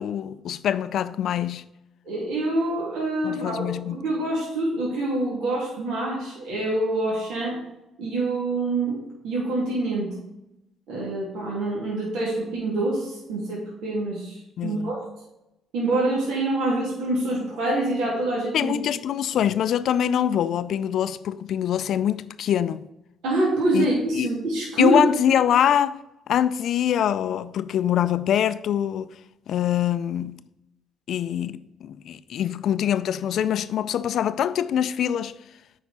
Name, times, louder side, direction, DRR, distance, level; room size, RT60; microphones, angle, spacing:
voice 1, 0.0-1.6 3.2-4.0 14.6-14.9 18.5-22.9 23.7-24.3 24.8-26.0 26.3-29.1 29.5-30.4 31.1-35.3, left 10 dB, 65° left, 0.4 m, -24 dB
voice 2, 2.1-7.6 8.0-9.0 9.2-10.1 10.9-14.4 14.6-15.0 15.7-18.7 23.2-25.0, right 2 dB, 80° right, 2.5 m, -25 dB
8.3 x 5.0 x 4.3 m
supercardioid pair, 80°, 0 cm